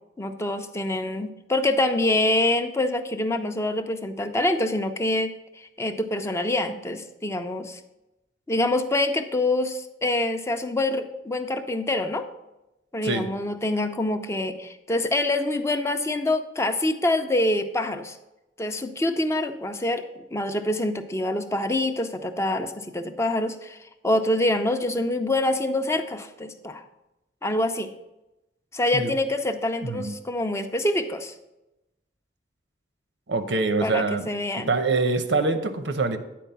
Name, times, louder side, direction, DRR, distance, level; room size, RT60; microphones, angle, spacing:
voice 1, 0.2-7.8 8.5-12.3 12.9-18.2 18.6-26.8 27.4-27.9 28.7-31.3 33.8-34.7, left 1 dB, 15° left, 8 dB, 0.5 m, -26 dB
voice 2, 29.8-30.2 33.3-34.3 34.7-36.2, right 3 dB, 90° right, 9 dB, 0.8 m, -24 dB
9.3 x 4.5 x 5.6 m, 0.96 s
head